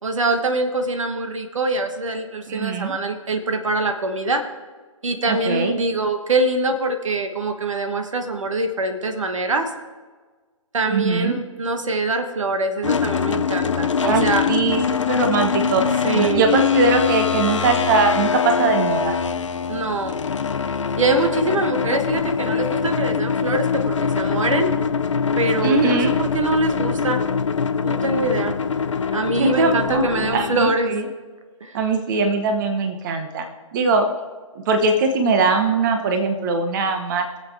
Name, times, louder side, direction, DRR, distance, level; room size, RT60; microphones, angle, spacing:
voice 1, 0.0-4.4 5.0-9.7 10.7-14.4 16.0-16.6 19.7-20.2 21.0-24.7 25.4-27.2 27.8-28.5 29.1-30.9 31.6-31.8, right 2 dB, 65° right, 7 dB, 1.3 m, -23 dB
voice 2, 2.5-2.9 5.3-5.7 10.9-11.4 14.0-19.2 25.6-26.1 29.4-31.0 31.7-33.5 33.7-34.1 34.5-37.4, right 3 dB, 35° right, 5 dB, 1.1 m, -21 dB
sound 1, 12.8-30.7, left 6 dB, 60° left, 0.8 m, -23 dB
22.5 x 7.7 x 3.5 m, 1.4 s
figure-of-eight pair, 130°, 17 cm